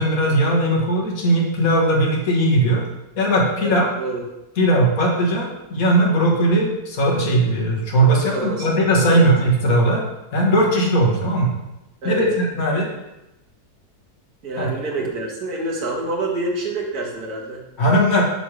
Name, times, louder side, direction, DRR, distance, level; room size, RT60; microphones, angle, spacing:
voice 1, 0.0-2.9 3.2-3.9 4.6-10.0 10.3-11.5 12.0-12.9 14.6-14.7 17.8-18.2, right 1 dB, 70° left, -1 dB, 1.8 m, -18 dB
voice 2, 3.6-4.2 8.3-8.7 9.1-9.3 12.0-12.3 14.4-17.6, right 2 dB, 85° right, 0 dB, 1.8 m, -27 dB
7.7 x 3.2 x 6.2 m, 0.94 s
omnidirectional pair, 1.6 m